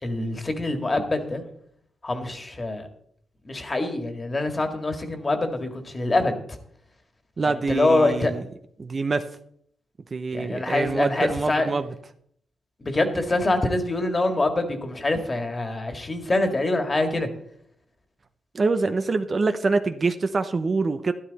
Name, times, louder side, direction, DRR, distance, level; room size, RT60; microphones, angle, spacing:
voice 1, 0.0-1.4 2.0-2.8 3.5-6.3 7.7-8.3 10.3-11.7 12.8-17.3, left 2 dB, 30° left, 6 dB, 2.0 m, -25 dB
voice 2, 7.4-8.4 8.8-9.3 10.1-11.9 18.5-21.1, right 3 dB, 40° right, 9 dB, 0.7 m, -25 dB
12.5 x 11.5 x 4.1 m, 0.66 s
cardioid pair, 90°, 0 cm